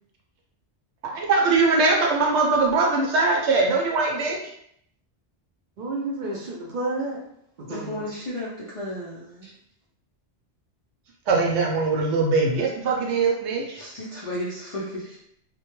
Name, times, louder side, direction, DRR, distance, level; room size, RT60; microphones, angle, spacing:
voice 1, 1.1-4.4 11.3-13.8, right 3 dB, 75° right, 0 dB, 0.9 m, -21 dB
voice 2, 5.8-7.2 7.6-8.0 9.4-9.5, right 2 dB, 60° right, -3 dB, 0.5 m, -31 dB
voice 3, 7.7-9.5 13.8-15.2, left 1 dB, 50° left, -7 dB, 0.3 m, -33 dB
2.2 x 2.2 x 2.9 m, 0.71 s
omnidirectional pair, 1.2 m